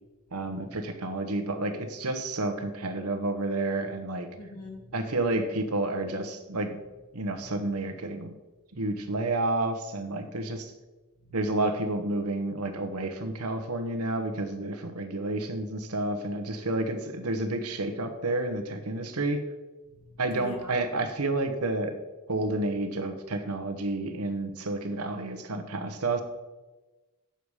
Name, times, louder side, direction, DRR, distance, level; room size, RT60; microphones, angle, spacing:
voice 1, 0.3-4.3 4.9-6.8 7.1-8.3 8.7-10.7 11.3-19.4 20.2-21.9 22.3-26.2, right 2 dB, 85° right, 7 dB, 1.1 m, -30 dB
voice 2, 4.4-5.0 7.3-7.5 8.9-9.1 11.2-11.4 19.9-20.8, left 1 dB, 80° left, 1 dB, 1.9 m, -46 dB
9.0 x 6.9 x 4.8 m, 1.2 s
head